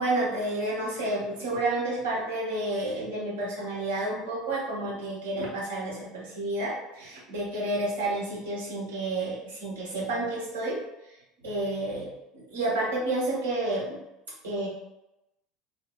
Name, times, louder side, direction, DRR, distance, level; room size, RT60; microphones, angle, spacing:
voice 1, 0.0-10.8 11.4-12.1 12.3-14.0 14.4-14.7, right 2 dB, 80° right, -6 dB, 1.2 m, -30 dB
2.8 x 2.7 x 3.0 m, 0.91 s
hypercardioid pair, 70°, 0 cm